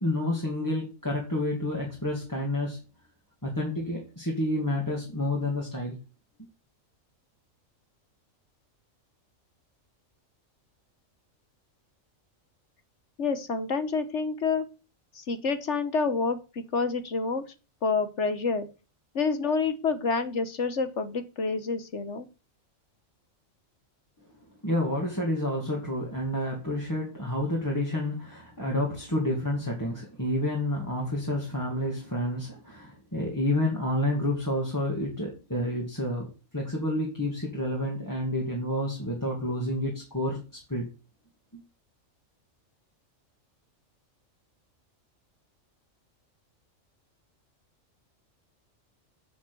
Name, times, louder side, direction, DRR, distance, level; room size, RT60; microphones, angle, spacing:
voice 1, 0.0-2.8 3.4-6.0 24.6-40.4 40.7-40.9 41.5-41.6, left 1 dB, 15° left, -2 dB, 2.2 m, -29 dB
voice 2, 13.2-14.6 15.1-17.4 17.8-18.7 19.1-22.3, left 4 dB, 60° left, 10 dB, 1.5 m, -28 dB
7.3 x 7.3 x 6.9 m, 0.32 s
omnidirectional pair, 1.4 m